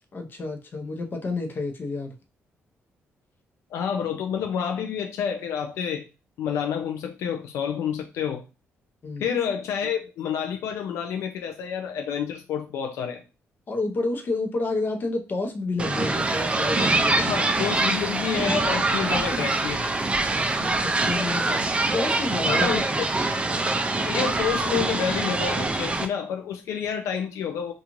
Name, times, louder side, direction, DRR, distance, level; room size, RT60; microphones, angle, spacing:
voice 1, 0.1-2.1 9.0-9.3 13.7-17.5 20.5-21.6 21.9-22.7, left 3 dB, 45° left, 0.6 m, -30 dB
voice 2, 3.7-6.1 6.4-8.4 9.2-13.2 17.3-20.0 22.5-22.8 24.0-27.7, left 7 dB, 85° left, 0.3 m, -29 dB
sound 1, 15.8-26.1, right 2 dB, 25° right, 0.4 m, -24 dB
2.5 x 2.3 x 2.9 m
cardioid pair, 95°, 5 cm